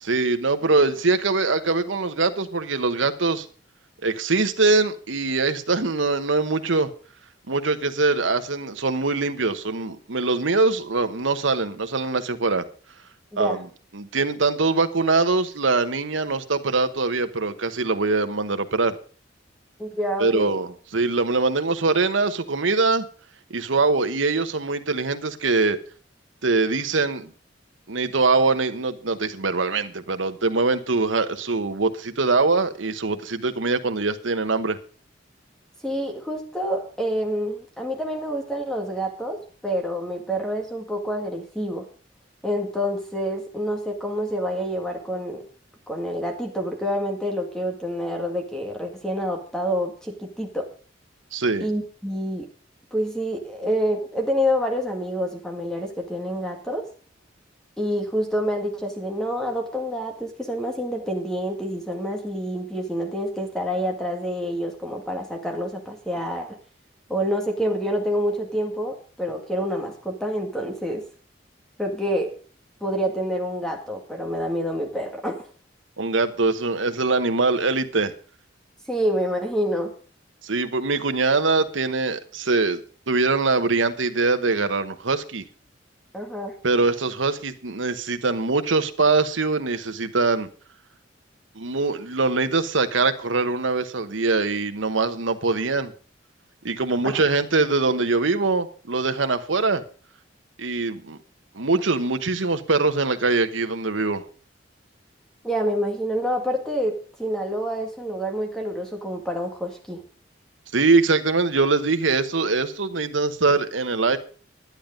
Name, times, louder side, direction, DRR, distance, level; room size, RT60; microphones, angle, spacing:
voice 1, 0.0-3.5 4.0-6.9 7.5-12.6 13.4-13.7 13.9-18.9 20.2-23.0 23.5-25.8 26.4-27.3 27.9-34.8 51.3-51.7 76.0-78.1 80.4-82.8 83.1-85.4 86.6-90.5 91.6-95.9 96.6-99.8 100.6-101.2 101.5-104.2 110.7-114.2, right 3 dB, 80° right, 1.1 m, -23 dB
voice 2, 19.8-20.5 35.8-41.9 42.4-45.4 45.9-50.7 51.6-52.5 52.9-56.9 57.8-66.6 67.1-71.0 71.8-72.3 72.8-75.5 78.9-79.9 86.1-86.5 97.0-97.3 105.4-110.0, equal, 5° left, 1.9 m, -27 dB
11.0 x 10.5 x 5.2 m
head